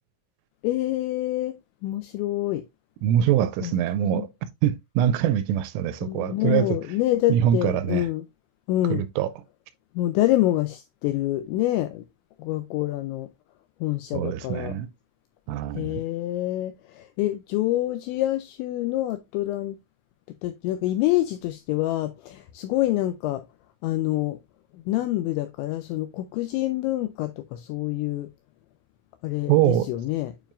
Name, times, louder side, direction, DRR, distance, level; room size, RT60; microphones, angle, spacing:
voice 1, 0.6-1.6 1.8-2.6 3.6-4.3 6.0-8.3 8.7-9.0 10.0-12.0 12.4-13.3 13.8-14.8 15.7-19.8 20.3-23.5 23.8-24.4 24.7-28.3 29.2-30.3, left 15 dB, 85° left, 2.6 m, -26 dB
voice 2, 3.0-4.3 4.6-6.8 7.3-8.0 8.9-9.3 14.1-14.9 15.5-16.0 29.5-29.9, right 11 dB, 85° right, 3.0 m, -23 dB
9.1 x 4.8 x 2.5 m
omnidirectional pair, 5.8 m